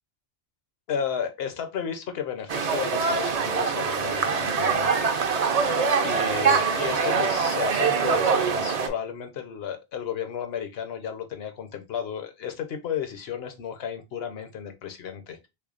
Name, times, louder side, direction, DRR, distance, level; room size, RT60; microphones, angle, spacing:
voice 1, 0.9-5.1 6.0-15.5, left 8 dB, 75° left, 0.9 m, -33 dB
sound 1, 2.5-8.9, right 5 dB, 50° right, 0.5 m, -24 dB
3.4 x 3.3 x 2.4 m
omnidirectional pair, 1.0 m